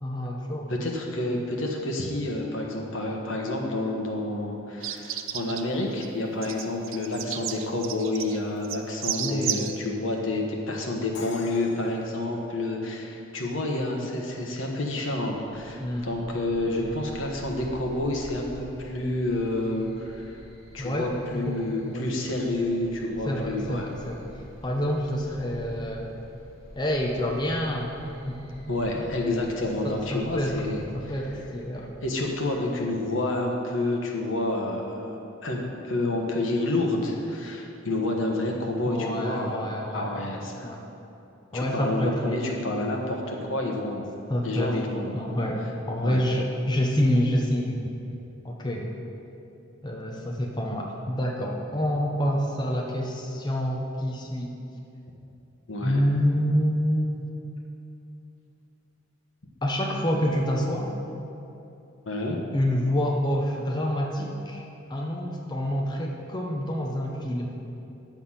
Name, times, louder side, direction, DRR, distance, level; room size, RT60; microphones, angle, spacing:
voice 1, 0.0-0.7 9.2-9.7 15.8-16.4 16.7-16.8 20.8-22.3 23.3-24.2 24.6-26.1 26.8-28.0 28.2-28.6 29.0-29.1 29.8-31.9 38.9-40.3 40.6-40.8 41.5-42.4 44.3-44.8 45.1-47.8 48.4-48.9 49.8-54.5 55.8-57.3 59.6-60.9 62.5-67.5, equal, 20° left, -1 dB, 0.8 m, -27 dB
voice 2, 0.7-20.4 20.7-23.9 28.7-30.8 32.0-40.7 41.5-44.1 44.4-45.3 46.0-46.2 55.7-56.0 62.0-62.4, left 2 dB, 75° left, 0 dB, 1.3 m, -29 dB
sound 1, 4.8-5.6 5.9-6.1 6.4-9.7, right 10 dB, 85° right, 0.6 m, -32 dB
Crash cymbal, 11.1-13.1, left 3 dB, 60° left, 0.7 m, -44 dB
sound 2, 15.3-33.3, equal, 35° right, 2.5 m, -48 dB
9.8 x 7.0 x 5.7 m, 2.8 s
head